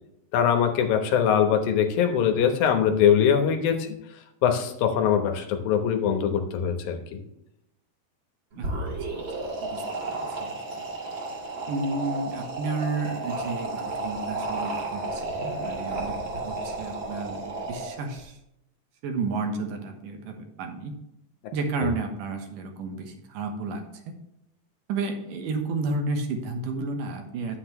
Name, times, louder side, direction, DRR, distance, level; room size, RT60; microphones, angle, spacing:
voice 1, 0.3-3.9 4.4-7.2, left 8 dB, 90° left, 5 dB, 2.9 m, -22 dB
sound 1, 8.5-18.2, right 2 dB, 40° right, 2.3 m, -33 dB
voice 2, 10.1-10.5 11.7-18.4 19.0-20.9 21.5-24.0 24.9-27.6, right 3 dB, 75° right, 4 dB, 2.7 m, -32 dB
9.9 x 7.2 x 3.1 m, 0.83 s
omnidirectional pair, 4.0 m